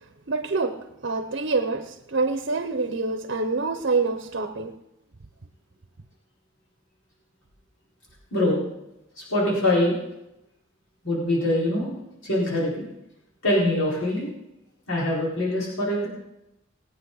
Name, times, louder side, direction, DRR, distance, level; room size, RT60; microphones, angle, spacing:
voice 1, 0.3-4.8, right 3 dB, 60° right, 0.8 m, -26 dB
voice 2, 8.3-8.6 9.2-10.0 11.0-11.9 12.2-12.8 13.4-14.3 14.9-16.1, left 1 dB, 80° left, 4.5 m, -23 dB
20.0 x 9.3 x 4.0 m
head